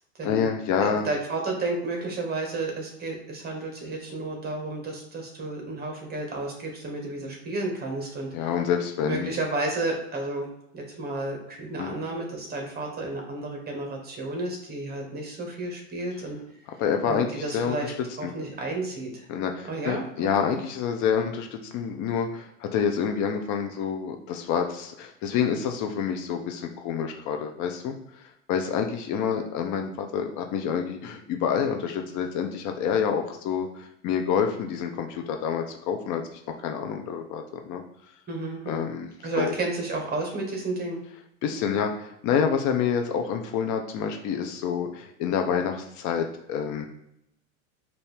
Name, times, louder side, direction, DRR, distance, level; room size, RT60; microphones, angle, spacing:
voice 1, 0.2-1.1 8.3-9.3 11.8-11.9 16.8-17.9 18.2-18.3 19.3-37.4 37.7-37.8 38.7-39.1 39.4-39.5 41.4-46.8, left 7 dB, 45° left, 4 dB, 0.6 m, -28 dB
voice 2, 0.8-8.3 9.0-10.5 10.7-16.4 17.0-17.9 18.2-19.3 19.6-20.0 20.4-20.6 38.3-38.9 39.2-41.0, right 2 dB, 25° right, 1 dB, 1.5 m, -32 dB
4.4 x 2.7 x 3.4 m, 0.78 s
hypercardioid pair, 105°, 40 cm